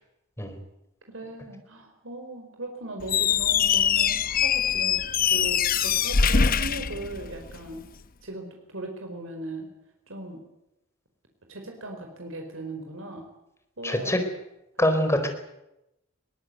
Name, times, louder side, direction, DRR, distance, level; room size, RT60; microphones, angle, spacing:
voice 1, 1.1-5.0 5.3-7.8 8.2-9.7 10.1-10.4 11.5-13.3 13.8-14.1, right 2 dB, 80° right, 3 dB, 4.9 m, -38 dB
Squeak, 3.0-7.7, left 7 dB, 45° left, 0.8 m, -23 dB
voice 2, 13.8-14.2 14.8-15.3, left 1 dB, 15° left, 6 dB, 4.5 m, -23 dB
22.0 x 19.5 x 9.4 m, 0.86 s
head